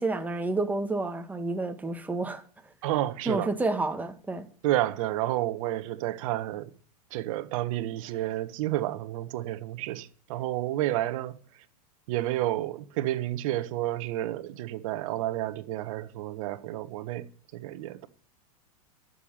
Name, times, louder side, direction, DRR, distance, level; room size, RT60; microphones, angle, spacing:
voice 1, 0.0-2.4 3.3-4.5, right 2 dB, 10° right, 1.9 m, -29 dB
voice 2, 2.8-3.5 4.6-6.7 7.1-11.4 12.1-18.1, right 15 dB, 60° right, 1.4 m, -30 dB
12.0 x 7.1 x 9.9 m
hypercardioid pair, 120°, 20 cm